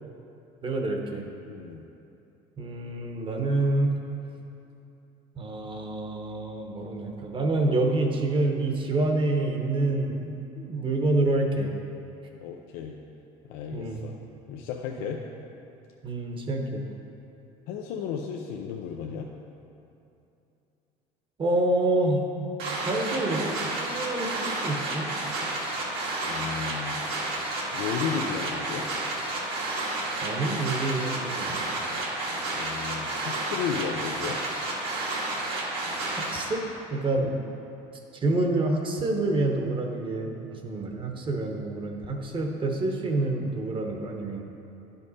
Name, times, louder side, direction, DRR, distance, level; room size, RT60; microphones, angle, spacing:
voice 1, 0.6-1.3 2.6-3.9 5.3-11.7 13.7-14.0 15.0-15.1 16.0-16.8 21.4-22.2 22.9-25.1 30.2-31.7 36.1-36.6 36.9-37.4 38.1-44.4, right 2 dB, 30° right, 2 dB, 1.0 m, -27 dB
voice 2, 1.5-1.8 12.4-13.0 13.5-14.2 14.5-15.2 17.7-19.3 26.2-27.0 27.7-28.9 32.5-34.4 37.1-37.3, left 7 dB, 80° left, 1 dB, 0.5 m, -34 dB
sound 1, 22.6-36.4, right 2 dB, 75° right, 1.9 m, -31 dB
11.0 x 5.4 x 4.1 m, 2.8 s
supercardioid pair, 105°, 16 cm